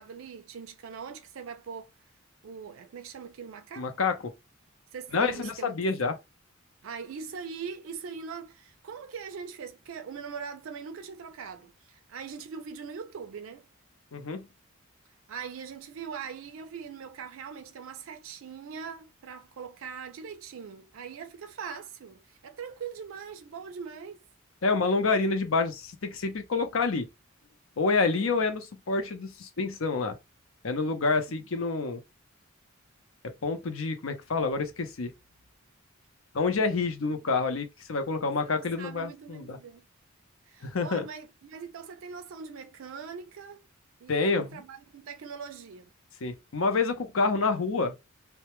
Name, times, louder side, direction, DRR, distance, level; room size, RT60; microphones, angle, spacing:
voice 1, 0.0-1.9 2.4-3.9 4.9-5.7 6.8-13.7 15.3-24.2 28.1-28.4 31.3-31.4 37.0-37.2 38.2-39.9 40.5-43.7 44.0-45.9, right 6 dB, 65° right, 0.4 m, -41 dB
voice 2, 3.8-4.3 5.1-6.2 14.1-14.5 24.6-27.1 27.8-30.2 30.6-32.0 33.4-35.1 36.3-39.6 40.6-41.0 44.1-44.6 46.2-47.9, left 4 dB, 70° left, 0.6 m, -28 dB
2.1 x 2.1 x 2.9 m
head